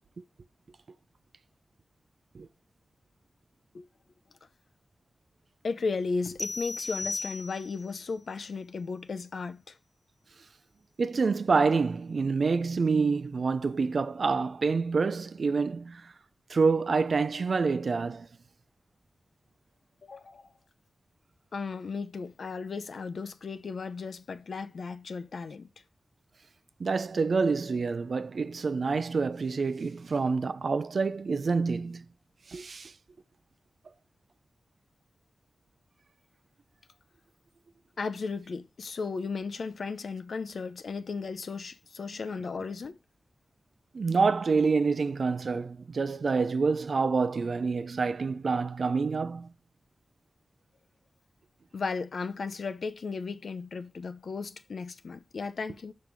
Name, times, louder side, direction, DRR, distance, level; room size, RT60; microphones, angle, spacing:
voice 1, 5.6-9.8 20.0-20.5 21.5-25.7 38.0-43.0 51.7-55.9, left 4 dB, 75° left, 0.6 m, -35 dB
sound 1, 6.4-7.9, left 2 dB, 20° left, 0.4 m, -35 dB
voice 2, 11.0-16.1 16.5-18.3 26.8-32.1 32.5-32.9 43.9-49.5, right 4 dB, 65° right, 0.5 m, -27 dB
5.7 x 5.3 x 4.6 m
wide cardioid pair, 75°, 0 cm